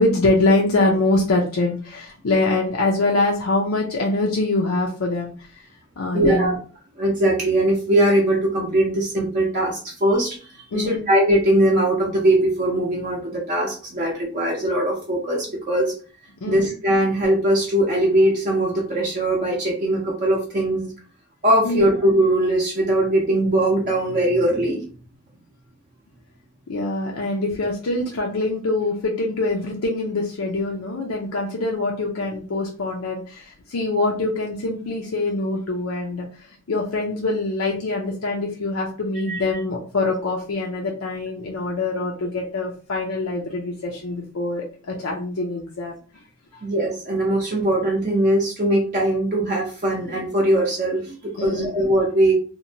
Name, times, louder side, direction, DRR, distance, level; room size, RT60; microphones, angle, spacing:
voice 1, 0.0-5.7 6.0-6.6 10.7-11.0 16.4-16.7 21.6-21.9 26.7-46.0 51.4-51.7, left 2 dB, 75° left, -1 dB, 0.5 m, -24 dB
voice 2, 6.1-6.5 7.0-15.9 16.5-20.9 21.4-24.8 39.3-39.4 46.6-52.4, right 1 dB, 35° right, -3 dB, 0.5 m, -20 dB
2.9 x 2.1 x 2.6 m, 0.39 s
head